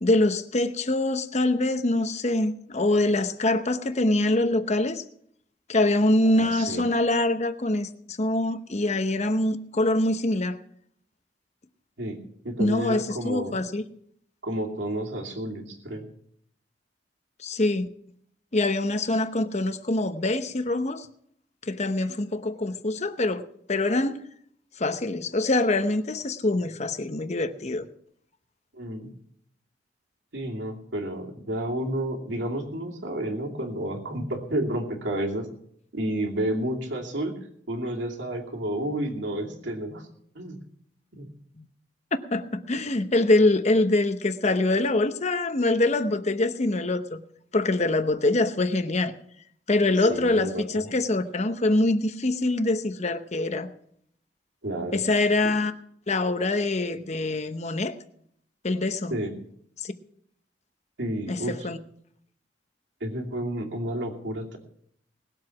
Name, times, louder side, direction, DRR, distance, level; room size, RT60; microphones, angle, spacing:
voice 1, 0.0-5.0 5.7-10.6 12.6-13.8 17.4-17.9 18.5-21.1 21.6-23.4 23.7-24.2 24.8-27.9 41.6-41.7 42.3-47.2 47.5-49.2 49.7-53.7 54.9-55.7 56.1-57.9 58.6-59.2 59.8-59.9 61.3-61.8, left 2 dB, 40° left, 10 dB, 0.9 m, -24 dB
voice 2, 6.2-6.8 12.0-13.6 14.4-16.1 28.7-29.1 30.3-35.5 35.9-37.3 37.7-40.0 40.3-40.6 41.1-41.3 50.0-50.8 54.6-55.0 59.1-59.3 61.0-61.7 63.0-64.6, right 1 dB, 80° right, 1 dB, 2.7 m, -31 dB
19.5 x 7.7 x 5.9 m, 0.68 s
head